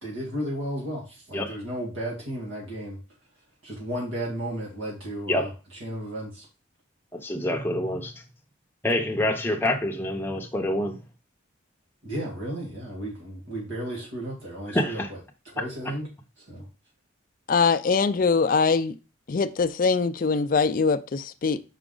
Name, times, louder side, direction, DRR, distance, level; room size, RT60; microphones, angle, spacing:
voice 1, 0.0-3.0 3.4-6.5 12.0-15.2 15.5-16.1 16.4-16.7, right 1 dB, 80° right, 2.0 m, -34 dB
voice 2, 7.1-8.2 8.8-11.0 14.7-15.1 15.6-15.7, left 1 dB, 10° left, 0.7 m, -26 dB
voice 3, 17.5-18.9 19.3-21.6, left 4 dB, 45° left, 0.4 m, -22 dB
5.6 x 4.9 x 3.8 m
head